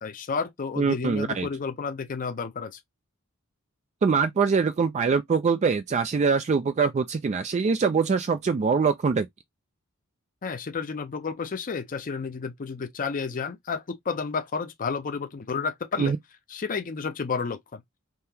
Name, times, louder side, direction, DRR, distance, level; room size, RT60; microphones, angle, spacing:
voice 1, 0.0-2.8 10.4-16.1 16.5-17.8, left 5 dB, 40° left, 0.5 m, -31 dB
voice 2, 0.8-1.5 4.0-9.3 16.0-16.2, right 5 dB, 30° right, 0.3 m, -23 dB
3.7 x 2.8 x 2.7 m
head